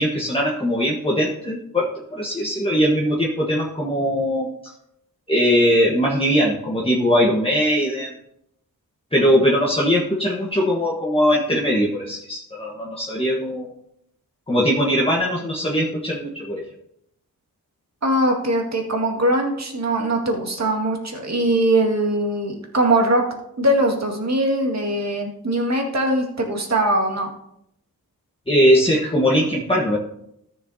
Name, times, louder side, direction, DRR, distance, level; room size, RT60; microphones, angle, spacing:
voice 1, 0.0-4.7 5.3-8.1 9.1-13.7 14.5-16.6 28.5-30.0, equal, 15° left, -4 dB, 1.4 m, -20 dB
voice 2, 18.0-23.2 23.6-27.3, right 1 dB, 50° right, 1 dB, 2.1 m, -21 dB
13.5 x 7.1 x 2.8 m, 0.77 s
wide cardioid pair, 80°, 36 cm